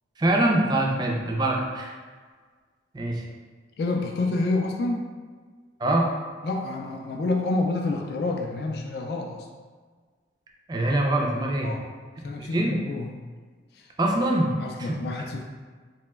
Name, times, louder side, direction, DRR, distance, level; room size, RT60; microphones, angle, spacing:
voice 1, 0.2-1.9 2.9-3.2 5.8-6.1 10.7-11.7 12.5-12.8 14.0-14.5 14.8-15.0, right 1 dB, 25° right, 0 dB, 0.3 m, -23 dB
voice 2, 3.8-5.0 6.4-9.5 11.6-11.9 12.2-13.1 13.7-13.9 14.6-15.4, left 2 dB, 65° left, 1 dB, 0.3 m, -28 dB
2.9 x 2.1 x 3.3 m, 1.5 s
head